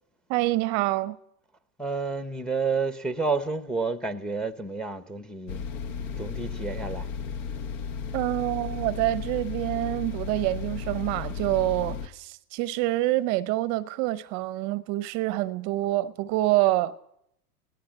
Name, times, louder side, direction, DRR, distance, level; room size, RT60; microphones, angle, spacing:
voice 1, 0.3-1.2 8.1-17.0, right 17 dB, 40° right, 0.7 m, -26 dB
voice 2, 1.8-5.7 6.0-7.1, right 4 dB, ahead, 0.9 m, -30 dB
sound 1, 5.5-12.1, left 6 dB, 55° left, 1.4 m, -34 dB
28.0 x 18.0 x 6.5 m
hypercardioid pair, 120°, 46 cm